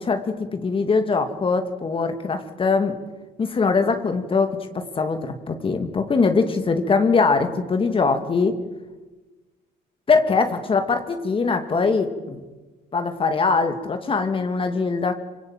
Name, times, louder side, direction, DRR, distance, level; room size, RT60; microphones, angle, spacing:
voice 1, 0.0-3.0 3.4-8.6 10.1-12.4 12.9-15.1, left 4 dB, 30° left, 7 dB, 2.5 m, -22 dB
26.0 x 25.0 x 9.1 m, 1.2 s
cardioid pair, 110°, 17 cm